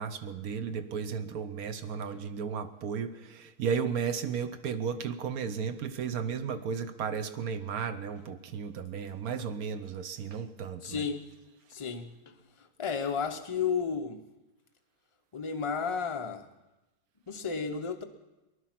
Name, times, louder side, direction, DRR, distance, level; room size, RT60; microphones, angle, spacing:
voice 1, 0.0-11.0, right 6 dB, 70° right, 10 dB, 1.2 m, -34 dB
voice 2, 10.8-11.3 11.7-14.2 15.3-16.5 17.3-18.0, left 6 dB, 45° left, 4 dB, 0.4 m, -33 dB
19.5 x 11.0 x 5.9 m, 1.1 s
omnidirectional pair, 1.7 m